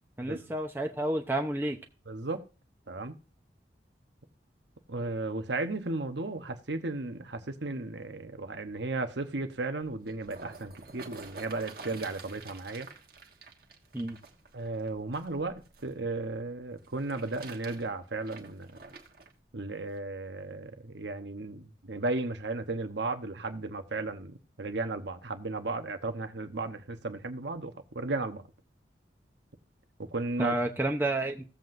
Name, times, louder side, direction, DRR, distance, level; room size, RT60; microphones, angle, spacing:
voice 1, 0.2-1.8 13.9-14.2 30.4-31.4, right 1 dB, 10° right, 0.8 m, -30 dB
voice 2, 2.1-2.4 2.9-3.1 4.9-12.9 14.5-18.8 19.5-28.4 30.0-30.5, right 2 dB, 75° right, 1.0 m, -35 dB
sound 1, 9.8-15.9 16.8-19.3 20.0-20.1, right 4 dB, 55° right, 1.4 m, -49 dB
16.5 x 7.7 x 2.6 m
head